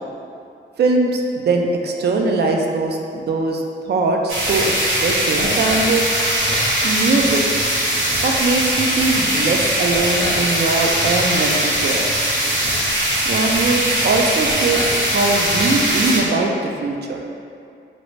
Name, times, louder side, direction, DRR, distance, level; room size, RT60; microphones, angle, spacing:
voice 1, 0.8-6.1 6.8-7.4 8.2-12.3 13.2-17.2, right 3 dB, 55° right, 2 dB, 0.4 m, -21 dB
sound 1, 4.3-16.2, right 1 dB, 75° right, 0.9 m, -20 dB
3.3 x 2.7 x 3.1 m, 2.4 s
wide cardioid pair, 100°, 20 cm